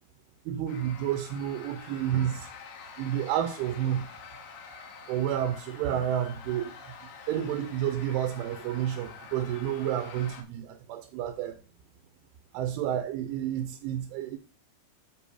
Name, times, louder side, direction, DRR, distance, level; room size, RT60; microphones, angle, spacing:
voice 1, 0.5-2.5 3.0-4.1 5.1-6.7 7.3-11.6 12.5-14.4, right 10 dB, 80° right, 3.1 m, -30 dB
sound 1, 0.7-10.4, left 5 dB, 70° left, 2.2 m, -47 dB
9.2 x 5.0 x 4.3 m
omnidirectional pair, 5.8 m